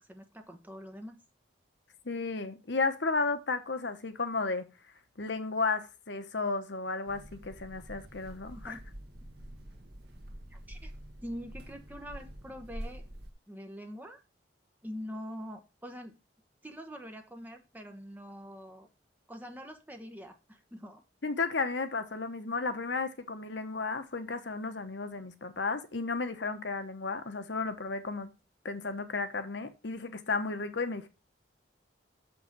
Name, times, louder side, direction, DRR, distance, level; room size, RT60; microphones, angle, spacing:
voice 1, 0.1-1.2 8.5-8.8 10.5-10.9 11.2-13.0 13.5-14.2 14.8-16.2 16.6-18.9 19.3-21.0, equal, 10° right, 1.1 m, -44 dB
voice 2, 2.0-4.7 5.2-8.8 21.2-28.3 28.6-31.1, left 3 dB, 65° left, 1.1 m, -33 dB
sound 1, 7.1-13.3, right 1 dB, 55° right, 1.7 m, -46 dB
6.8 x 5.9 x 6.1 m
head